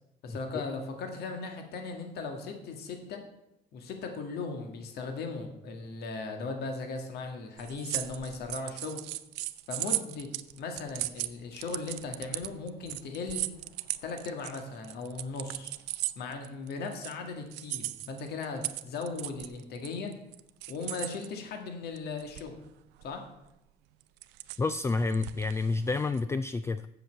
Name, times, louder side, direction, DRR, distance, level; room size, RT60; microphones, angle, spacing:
voice 1, 0.2-3.2 3.7-9.0 9.7-10.3 10.6-13.5 14.0-15.7 16.2-20.1 20.7-22.6 23.0-23.2, left 4 dB, 70° left, 5 dB, 1.8 m, -38 dB
sound 1, 7.6-17.1 17.5-21.3 22.0-22.7 23.0-23.2 24.0-26.2, right 17 dB, 90° right, 0.5 m, -37 dB
voice 2, 24.6-26.9, left 3 dB, 15° left, 13 dB, 0.3 m, -29 dB
7.9 x 6.7 x 7.7 m, 0.84 s
cardioid pair, 110°, 17 cm